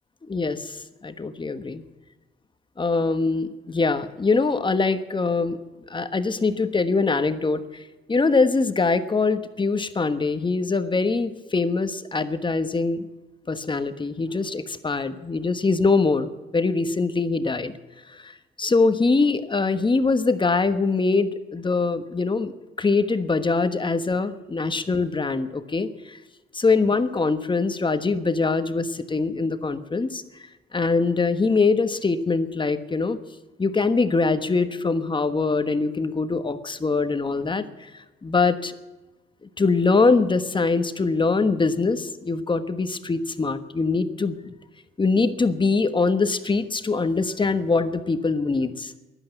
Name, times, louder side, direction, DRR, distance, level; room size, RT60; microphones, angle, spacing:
voice 1, 0.3-0.8 1.0-1.8 2.8-5.6 5.9-7.6 8.1-13.1 13.5-17.7 18.1-18.3 18.6-22.5 22.8-26.2 26.5-30.2 30.7-33.2 33.6-37.6 38.2-38.7 39.6-44.5 45.0-48.9, left 4 dB, 25° left, 10 dB, 1.2 m, -23 dB
15.0 x 11.5 x 7.9 m, 1.2 s
cardioid pair, 90°, 20 cm